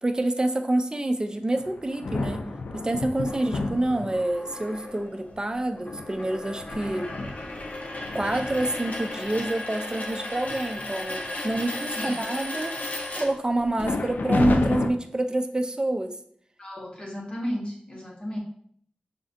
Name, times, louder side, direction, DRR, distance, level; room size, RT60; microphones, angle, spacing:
voice 1, 0.0-2.5 2.7-7.1 8.1-12.8 13.2-16.2, right 1 dB, 25° right, 7 dB, 0.4 m, -27 dB
sound 1, 1.6-4.5 5.2-5.3 5.8-9.4 9.9-10.1 10.4-10.8 11.2-12.0 13.8-14.9, left 2 dB, 85° left, 0.3 m, -31 dB
sound 2, 3.3-13.8, left 1 dB, 55° left, 0.7 m, -36 dB
voice 2, 16.6-18.4, equal, 35° left, -2 dB, 1.2 m, -33 dB
5.0 x 2.5 x 2.5 m, 0.62 s
wide cardioid pair, 60°, 3 cm